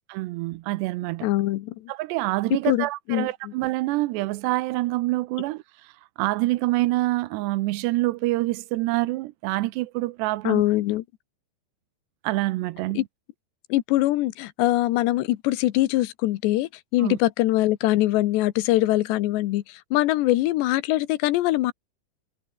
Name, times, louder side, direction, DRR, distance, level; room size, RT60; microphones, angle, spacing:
voice 1, 0.1-1.3 1.9-5.6 6.2-10.6 12.2-13.1 17.0-17.2, right 19 dB, 80° right, 2.9 m, -26 dB
voice 2, 1.2-1.7 2.7-3.5 10.4-11.0 13.0-13.1 13.7-19.6 19.9-21.7, left 16 dB, 85° left, 3.2 m, -23 dB
omnidirectional pair, 4.9 m